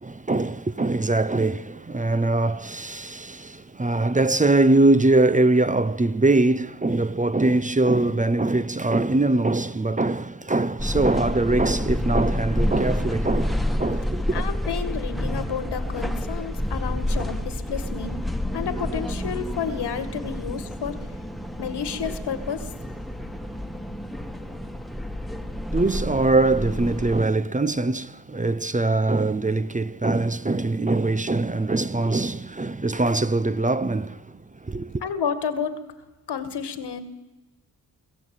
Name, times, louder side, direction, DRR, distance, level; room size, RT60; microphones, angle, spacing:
voice 1, 0.0-14.4 25.7-34.3 34.6-35.0, right 2 dB, 20° right, 0.7 m, -22 dB
sound 1, 10.8-27.2, left 1 dB, ahead, 1.7 m, -29 dB
voice 2, 14.3-18.2 18.5-20.9 21.6-22.7 35.0-35.8 36.3-37.0, left 7 dB, 85° left, 2.2 m, -30 dB
24.0 x 15.5 x 9.1 m
cardioid pair, 90°, 39 cm